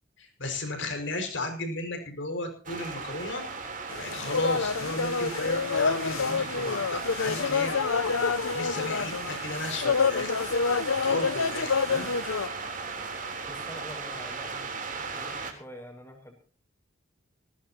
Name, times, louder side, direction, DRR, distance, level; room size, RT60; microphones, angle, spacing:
voice 1, 0.2-3.5 4.0-7.8 8.5-10.3 11.0-12.1, left 2 dB, 60° left, 5 dB, 5.6 m, -34 dB
sound 1, 2.7-15.5, right 4 dB, 40° right, 3.5 m, -37 dB
sound 2, 3.9-12.5, left 5 dB, 90° left, 0.7 m, -28 dB
voice 2, 13.5-14.7 14.9-16.3, equal, 10° left, 4 dB, 5.0 m, -45 dB
19.5 x 17.5 x 2.9 m, 0.38 s
head